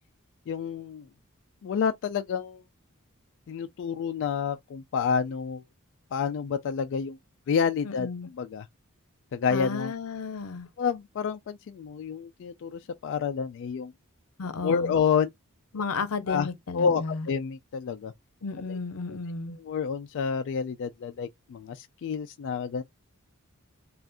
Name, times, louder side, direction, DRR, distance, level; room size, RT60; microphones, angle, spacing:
voice 1, 0.5-1.1 1.6-2.6 3.5-5.6 6.1-7.2 7.5-8.1 8.4-8.7 9.3-9.9 10.8-13.9 14.6-15.3 16.3-16.5 16.7-18.1 18.7-18.8 19.1-19.2 19.6-22.8, left 6 dB, 60° left, 0.3 m, -29 dB
voice 2, 7.8-8.3 9.5-10.7 14.4-15.0 15.7-17.3 18.4-19.6, left 4 dB, 90° left, 0.7 m, -33 dB
3.4 x 2.4 x 2.5 m
head